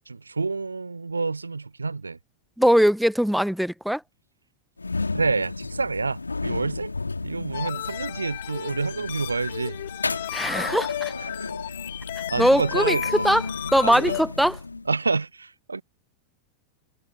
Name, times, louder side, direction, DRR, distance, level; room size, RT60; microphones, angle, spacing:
voice 1, 0.1-2.2 5.1-6.9 7.2-9.8 11.2-11.5 12.3-13.2 13.8-14.2 14.9-15.8, right 4 dB, 80° right, 1.2 m, -28 dB
voice 2, 2.6-4.0 10.3-11.1 12.4-13.4 13.7-14.6, equal, ahead, 1.1 m, -21 dB
sound 1, 4.8-15.0, left 3 dB, 80° left, 3.8 m, -33 dB
sound 2, 7.5-14.2, left 14 dB, 55° left, 6.3 m, -34 dB
figure-of-eight pair, 90°, 0 cm